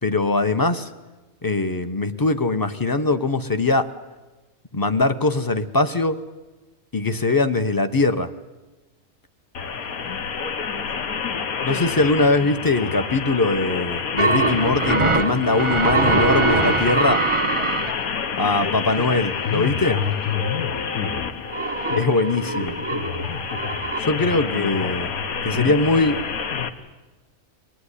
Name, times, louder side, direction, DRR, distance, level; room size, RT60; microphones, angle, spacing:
voice 1, 0.0-0.9 1.4-3.9 4.7-6.2 6.9-8.3 11.6-17.3 18.4-20.0 22.0-22.7 24.0-25.1 25.4-26.2, left 3 dB, 15° left, 9 dB, 0.9 m, -21 dB
sound 1, 9.5-26.7, left 6 dB, 85° left, 1.6 m, -28 dB
voice 2, 9.7-10.3 10.6-12.1 18.7-19.3 20.6-21.3 25.6-26.9, left 2 dB, 60° left, 1 dB, 3.4 m, -45 dB
sound 2, 14.2-17.9 18.9-19.0 19.6-19.7 21.5-24.0, right 3 dB, 25° right, 0.9 m, -22 dB
24.5 x 18.5 x 10.0 m, 1.2 s
omnidirectional pair, 1.5 m